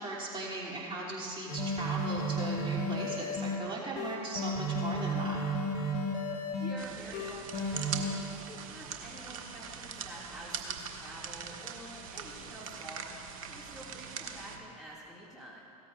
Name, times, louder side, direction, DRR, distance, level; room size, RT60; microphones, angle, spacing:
voice 1, 0.0-5.4, right 2 dB, 25° right, -4 dB, 3.0 m, -38 dB
sound 1, 1.5-3.6 4.0-6.7 7.1-8.1, equal, 50° left, 1.9 m, -33 dB
voice 2, 6.6-15.6, right 1 dB, 5° right, -7 dB, 2.4 m, -48 dB
sound 2, 6.8-14.6, right 7 dB, 65° right, 1.0 m, -42 dB
16.5 x 13.5 x 2.6 m, 2.5 s
figure-of-eight pair, 80°, 19 cm